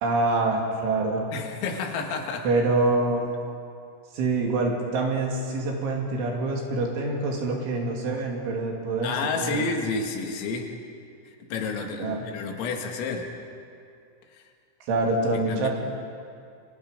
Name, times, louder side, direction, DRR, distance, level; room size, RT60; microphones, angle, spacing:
voice 1, 0.0-1.3 2.4-3.3 4.1-9.7 12.0-12.3 14.9-15.7, right 2 dB, 70° right, 0 dB, 5.1 m, -25 dB
voice 2, 1.3-2.5 9.0-10.7 11.5-13.3 15.5-15.7, left 4 dB, 85° left, 2 dB, 4.6 m, -30 dB
29.5 x 23.0 x 5.3 m, 2.4 s
omnidirectional pair, 5.8 m